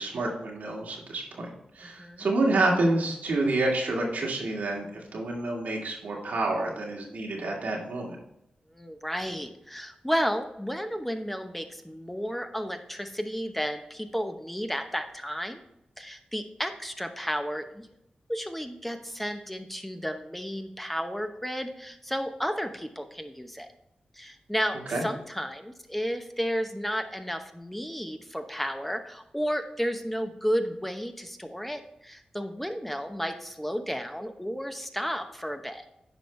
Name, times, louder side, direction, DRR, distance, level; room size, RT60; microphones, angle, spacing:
voice 1, 0.0-8.2 24.9-25.0, right 2 dB, 85° right, -1 dB, 1.8 m, -28 dB
voice 2, 1.8-2.3 8.7-15.6 16.0-17.9 18.3-23.7 24.1-35.8, equal, 5° left, 6 dB, 0.8 m, -32 dB
9.1 x 5.0 x 3.2 m, 0.80 s
cardioid pair, 45°, 3 cm